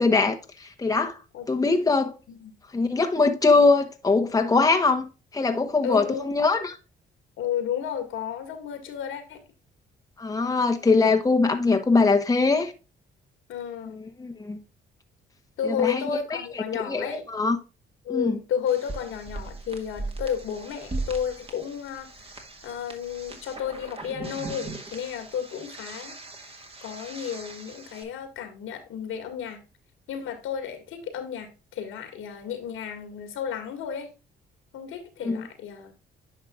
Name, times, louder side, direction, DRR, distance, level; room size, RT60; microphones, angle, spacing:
voice 1, 0.0-1.2 1.5-2.1 2.7-5.1 5.3-6.8 10.2-12.7 13.9-14.6 15.6-16.0 16.7-17.6 18.1-18.4 35.2-35.5, left 3 dB, 20° left, 1.0 m, -22 dB
voice 2, 5.8-6.3 7.4-9.4 13.5-14.0 15.6-17.3 18.0-26.2 26.4-26.5 26.8-29.6 30.1-34.1 34.7-35.9, left 8 dB, 85° left, 2.0 m, -32 dB
sound 1, 18.7-28.0, right 2 dB, 30° right, 1.9 m, -39 dB
10.0 x 5.5 x 2.4 m
cardioid pair, 90°, 20 cm